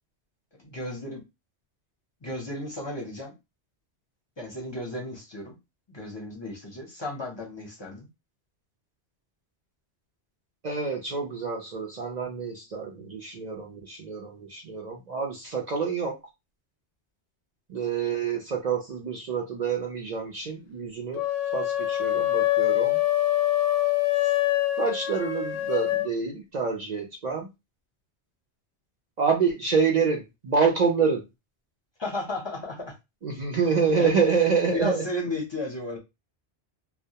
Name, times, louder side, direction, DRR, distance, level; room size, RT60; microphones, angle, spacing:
voice 1, 0.6-1.2 2.2-3.3 4.4-5.6 5.9-8.1 32.0-32.9 33.6-34.1 34.7-36.0, left 2 dB, 30° left, 0 dB, 0.5 m, -34 dB
voice 2, 10.6-16.1 17.7-21.2 21.5-23.0 24.8-27.5 29.2-31.2 33.2-35.0, right 5 dB, 55° right, 0 dB, 0.5 m, -27 dB
sound 1, 21.1-26.1, left 15 dB, 80° left, 0.8 m, -25 dB
2.1 x 2.1 x 2.7 m, 0.23 s
omnidirectional pair, 1.1 m